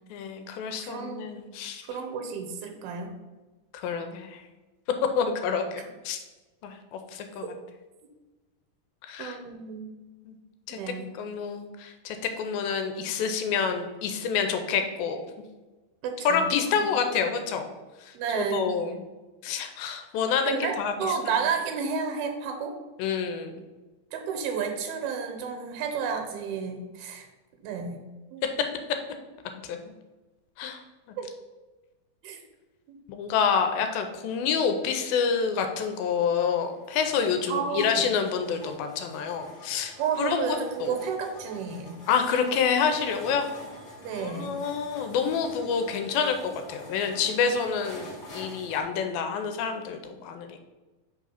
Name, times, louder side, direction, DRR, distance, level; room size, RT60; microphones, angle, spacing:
voice 1, 0.1-1.9 3.7-4.4 5.0-6.2 6.6-7.4 9.0-9.4 10.3-10.4 10.7-15.2 16.3-17.7 18.0-19.0 19.4-21.1 23.0-23.6 28.4-28.7 29.6-29.9 30.6-30.8 33.1-40.4 40.8-40.9 42.1-43.5 44.1-50.6, left 6 dB, 80° left, 6 dB, 2.3 m, -28 dB
voice 2, 0.8-1.4 1.9-3.1 9.2-9.9 10.7-11.1 16.0-16.4 16.8-16.9 18.1-18.8 20.4-22.7 24.1-27.3 27.6-28.0 28.3-28.4 31.2-31.3 32.2-32.4 32.9-33.0 37.5-38.1 40.0-42.0 44.0-44.6, right 6 dB, 85° right, 4 dB, 2.7 m, -31 dB
sound 1, 35.9-48.8, left 1 dB, 35° left, 1.8 m, -47 dB
5.3 x 3.7 x 5.6 m, 1.2 s
omnidirectional pair, 4.3 m